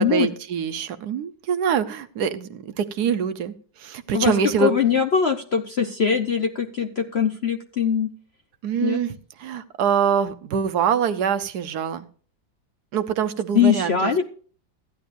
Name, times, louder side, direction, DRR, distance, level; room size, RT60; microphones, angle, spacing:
voice 1, 0.0-4.7 8.6-12.1 12.9-14.1, right 7 dB, 70° right, 11 dB, 1.1 m, -24 dB
voice 2, 4.6-8.1 8.8-9.0 13.5-14.2, left 7 dB, 55° left, 5 dB, 0.7 m, -21 dB
15.0 x 11.0 x 2.6 m, 0.43 s
omnidirectional pair, 1.9 m